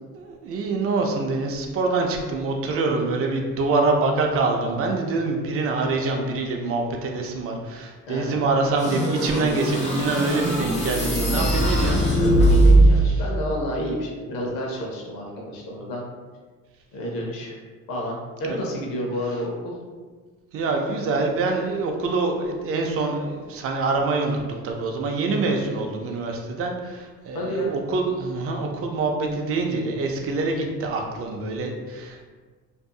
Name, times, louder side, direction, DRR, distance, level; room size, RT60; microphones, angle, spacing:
voice 1, 0.1-12.0 18.4-18.6 20.5-32.2, right 3 dB, 40° right, 2 dB, 0.5 m, -25 dB
voice 2, 8.1-8.7 11.9-16.0 16.9-17.5 17.9-19.7 27.3-27.7, equal, 75° left, -2 dB, 0.8 m, -30 dB
sound 1, 8.8-13.1, right 1 dB, 20° left, 0.9 m, -19 dB
2.7 x 2.5 x 2.3 m, 1.4 s
supercardioid pair, 90°, 34 cm